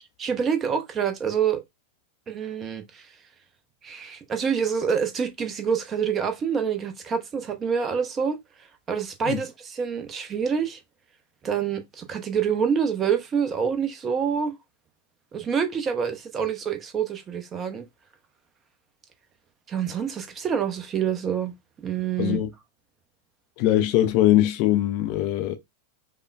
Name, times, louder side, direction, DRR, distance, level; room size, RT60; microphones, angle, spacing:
voice 1, 0.2-1.6 2.3-3.0 3.8-8.4 8.9-10.8 11.4-14.6 15.3-17.9 19.7-21.5 21.8-22.4, right 7 dB, 25° right, 0.6 m, -26 dB
voice 2, 22.2-22.5 23.6-25.6, left 13 dB, 45° left, 0.5 m, -21 dB
5.1 x 2.1 x 2.2 m
figure-of-eight pair, 90°, 0 cm